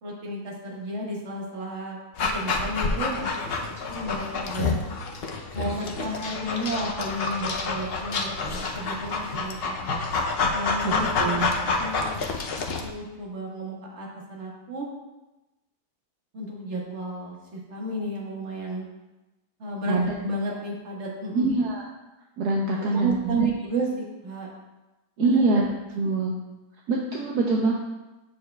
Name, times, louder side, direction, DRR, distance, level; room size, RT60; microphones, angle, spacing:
voice 1, 0.0-2.0 2.3-4.8 5.5-10.0 10.5-12.1 12.8-14.9 16.3-18.8 19.6-21.5 22.8-24.5 25.2-25.5, right 1 dB, 45° right, -3 dB, 1.6 m, -32 dB
Dog, 2.2-12.9, left 4 dB, 75° left, 0.5 m, -28 dB
voice 2, 10.8-11.5 19.9-20.2 21.3-21.8 22.4-23.5 25.2-25.7 26.0-26.3 26.9-27.7, right 3 dB, 70° right, -1 dB, 1.2 m, -24 dB
8.7 x 6.7 x 2.2 m, 1.0 s
omnidirectional pair, 1.8 m